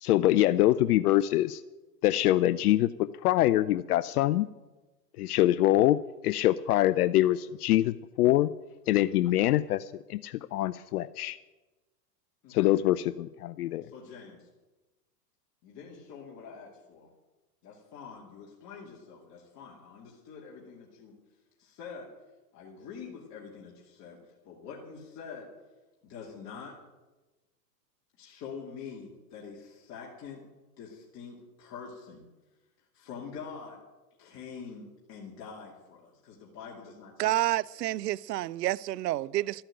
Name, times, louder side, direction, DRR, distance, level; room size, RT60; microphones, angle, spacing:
voice 1, 0.0-1.6 2.0-4.5 5.2-6.0 6.2-8.5 8.9-11.4 12.5-13.9, left 14 dB, 65° left, 0.6 m, -24 dB
voice 2, 13.8-14.5 15.6-17.1 17.6-21.1 21.6-22.1 22.5-24.2 24.4-25.5 26.0-26.8 28.2-30.4 30.8-32.2 32.9-33.8 34.2-37.3, left 6 dB, 35° left, 2.6 m, -45 dB
voice 3, 37.2-39.6, right 15 dB, 80° right, 0.6 m, -29 dB
13.0 x 8.8 x 9.0 m
hypercardioid pair, 130°, 48 cm